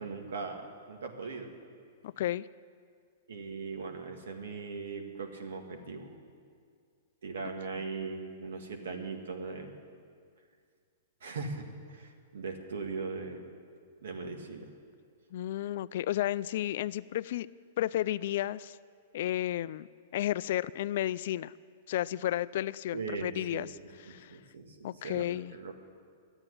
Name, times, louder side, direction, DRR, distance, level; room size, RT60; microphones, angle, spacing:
voice 1, 0.0-1.5 3.3-6.2 7.2-9.7 11.2-13.5 14.0-14.7 22.9-23.7 24.1-25.7, right 4 dB, 85° right, 4 dB, 1.8 m, -39 dB
voice 2, 2.0-2.4 15.3-17.5 17.8-18.8 19.1-19.9 20.1-21.5 21.9-23.7 24.1-24.3 24.8-25.5, left 13 dB, 55° left, 17 dB, 0.3 m, -32 dB
12.5 x 8.9 x 9.9 m, 2.1 s
hypercardioid pair, 155°, 0 cm